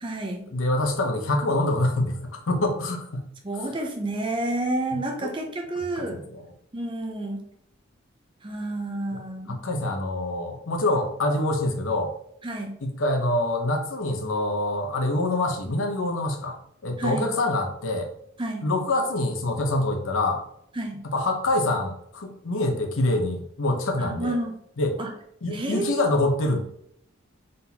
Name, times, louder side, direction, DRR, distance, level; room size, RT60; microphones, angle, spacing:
voice 1, 0.0-0.4 3.4-6.2 6.7-7.4 8.4-9.6 12.4-12.7 17.0-17.3 18.4-18.7 20.8-21.0 24.0-24.5 25.0-25.1 25.5-26.0, right 1 dB, 25° right, 3 dB, 0.5 m, -30 dB
voice 2, 0.5-3.2 4.9-5.3 6.0-6.4 9.1-9.2 9.5-12.1 12.8-16.6 16.8-18.1 18.6-20.4 21.1-24.4 24.8-25.0 25.4-26.6, left 2 dB, 75° left, 4 dB, 0.8 m, -25 dB
4.0 x 3.8 x 2.8 m, 0.71 s
head